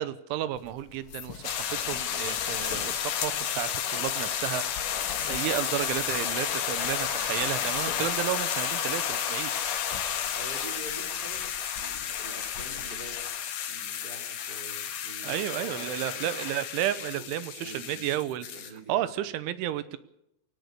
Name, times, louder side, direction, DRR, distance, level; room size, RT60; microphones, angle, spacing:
voice 1, 0.0-9.5 10.0-10.1 15.2-18.5 18.9-20.0, right 12 dB, 75° right, 14 dB, 3.1 m, -32 dB
sound 1, 0.5-13.3, left 9 dB, 80° left, 4.0 m, -47 dB
sound 2, 1.4-18.7, left 9 dB, 60° left, 2.3 m, -32 dB
voice 2, 10.3-13.2 13.7-16.4 17.1-17.2 17.6-18.1 18.4-19.1, right 2 dB, 20° right, 2 dB, 4.4 m, -46 dB
21.0 x 18.0 x 6.7 m, 0.81 s
omnidirectional pair, 5.9 m